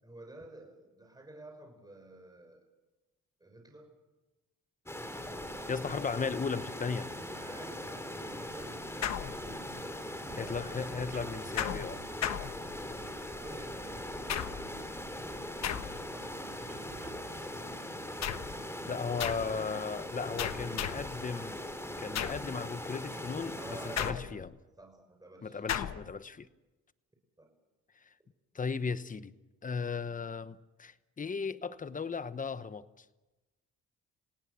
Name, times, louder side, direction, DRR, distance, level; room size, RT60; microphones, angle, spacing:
voice 1, 0.0-2.6 3.4-3.9 7.3-10.9 13.1-14.9 15.6-17.0 18.5-19.0 20.2-20.9 23.5-24.4 24.8-25.7 27.4-27.5, right 2 dB, 15° right, 4 dB, 6.1 m, -52 dB
sound 1, 4.9-24.1, left 1 dB, 10° left, 3.1 m, -41 dB
voice 2, 5.7-7.1 10.4-12.0 18.8-21.6 22.0-24.5 25.4-26.5 28.5-29.3 29.6-33.0, left 5 dB, 25° left, 14 dB, 1.0 m, -36 dB
sound 2, 9.0-9.9 11.6-13.1 14.3-14.9 15.6-16.2 18.2-18.6 19.2-19.6 20.4-21.2 22.1-22.6 24.0-24.6 25.7-26.1, left 9 dB, 60° left, 1.2 m, -36 dB
sound 3, 10.2-17.6, right 6 dB, 50° right, 2.8 m, -55 dB
28.5 x 17.5 x 7.0 m, 1.1 s
cardioid pair, 90°, 30 cm